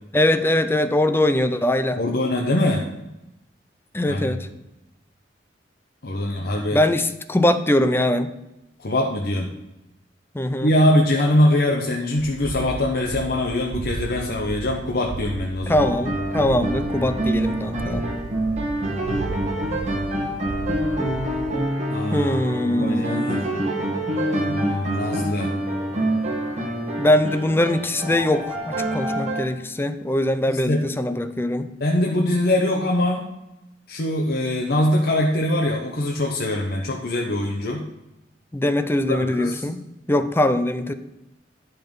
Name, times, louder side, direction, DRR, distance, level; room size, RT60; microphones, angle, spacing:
voice 1, 0.1-2.0 3.9-4.5 6.7-8.3 10.3-10.7 15.7-18.1 22.1-23.3 27.0-31.7 38.5-39.8 40.1-40.9, left 1 dB, 15° left, 10 dB, 0.5 m, -22 dB
voice 2, 2.0-2.9 4.1-4.4 6.0-6.8 8.8-9.5 10.6-15.9 21.9-23.5 24.5-25.5 30.5-30.8 31.8-33.2 33.9-37.9 39.1-39.7, left 1 dB, 60° left, 0 dB, 1.0 m, -23 dB
sound 1, 12.2-21.6, right 3 dB, 70° right, 0.5 m, -34 dB
sound 2, 15.8-29.5, right 1 dB, 40° right, 2.0 m, -26 dB
10.5 x 5.7 x 5.4 m, 0.92 s
head